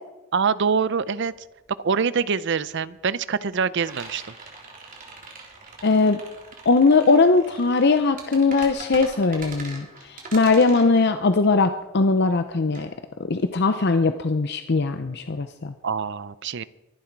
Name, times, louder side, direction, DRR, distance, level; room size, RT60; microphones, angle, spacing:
voice 1, 0.3-1.3 1.8-4.3 15.8-16.7, right 5 dB, 60° right, 17 dB, 0.6 m, -24 dB
sound 1, 0.8-0.9 1.2-13.9, right 3 dB, 40° right, 3.5 m, -42 dB
voice 2, 5.8-6.2 6.7-12.9 13.3-15.7, left 3 dB, 55° left, 9 dB, 0.7 m, -20 dB
23.5 x 11.5 x 4.6 m, 1.1 s
head